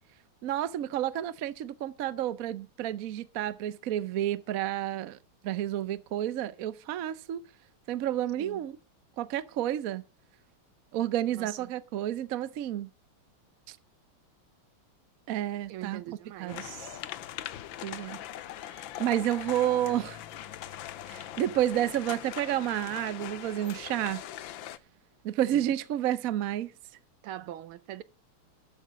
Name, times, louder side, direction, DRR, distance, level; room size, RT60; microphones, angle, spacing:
voice 1, 0.4-5.2 5.4-7.5 7.9-8.8 9.2-10.0 10.9-12.9 13.7-13.8 15.3-16.7 17.8-18.2 19.0-20.2 21.1-24.2 25.2-26.7, right 12 dB, 65° right, 0.8 m, -30 dB
voice 2, 11.3-11.7 15.7-17.0 25.5-25.7 27.2-28.0, right 13 dB, 80° right, 1.6 m, -42 dB
sound 1, 16.5-24.8, left 12 dB, 70° left, 1.4 m, -41 dB
13.0 x 5.0 x 8.6 m
omnidirectional pair, 2.4 m